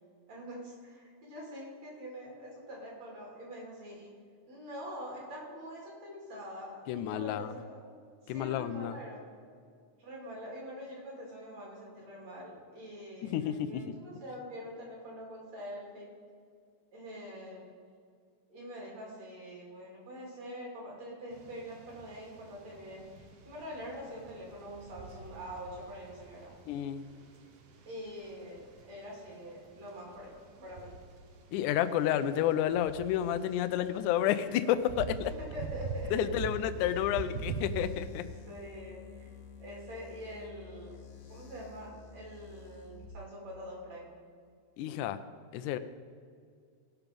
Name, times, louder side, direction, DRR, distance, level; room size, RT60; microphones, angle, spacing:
voice 1, 0.3-4.1 4.5-9.3 10.0-16.1 16.9-17.7 18.5-23.1 23.5-26.5 27.9-31.0 35.2-36.5 36.8-37.1 38.5-39.3 39.6-41.0 41.3-44.1, equal, 45° right, -3 dB, 3.8 m, -45 dB
voice 2, 6.9-7.5 8.3-9.0 13.2-13.8 26.7-27.0 31.5-35.3 36.1-38.2 44.8-45.2 45.5-45.8, left 11 dB, 90° left, 10 dB, 1.7 m, -30 dB
sound 1, 21.3-38.0, right 5 dB, 85° right, 1.3 m, -45 dB
sound 2, 36.2-43.0, left 4 dB, 70° left, 1.3 m, -50 dB
17.5 x 5.9 x 5.2 m, 2.2 s
omnidirectional pair, 4.2 m